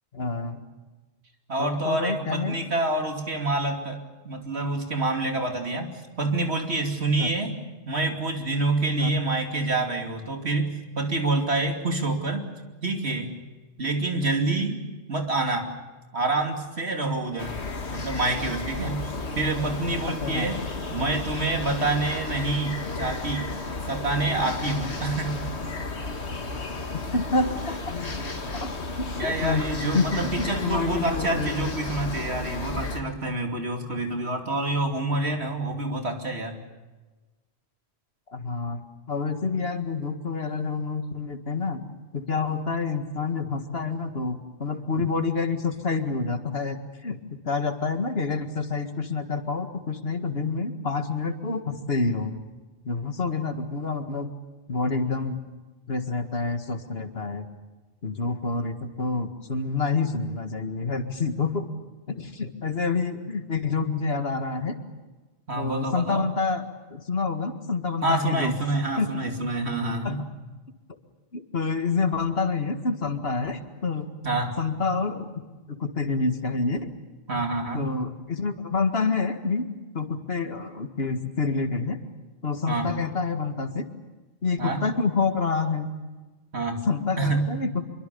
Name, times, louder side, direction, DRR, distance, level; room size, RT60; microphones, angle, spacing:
voice 1, 0.1-0.6 1.6-2.6 7.2-7.3 9.0-9.1 20.2-20.5 27.1-27.9 28.6-28.7 29.0-29.7 29.9-31.7 38.3-38.8 39.1-41.8 42.1-47.2 47.4-52.4 52.9-54.3 54.7-55.4 55.9-57.5 58.0-61.7 62.1-64.8 65.5-68.5 69.0-69.1 70.0-70.2 71.3-74.1 74.6-75.3 75.7-76.9 77.7-79.7 79.9-82.0 82.4-83.9 84.4-85.9 86.9-87.9, left 4 dB, 70° left, 7 dB, 2.1 m, -28 dB
voice 2, 1.5-7.6 7.8-12.5 12.8-13.4 13.8-14.8 15.1-15.7 16.1-17.6 17.9-19.1 19.3-20.6 20.9-23.5 23.9-25.4 29.2-36.6 65.5-66.3 68.0-70.2 74.2-74.6 77.3-77.9 82.7-82.9 84.6-84.9 86.5-86.8 87.2-87.5, right 2 dB, 80° right, 3 dB, 3.1 m, -27 dB
sound 1, 17.4-33.0, left 3 dB, 90° left, 2.2 m, -33 dB
26.0 x 23.5 x 7.0 m, 1.2 s
omnidirectional pair, 1.1 m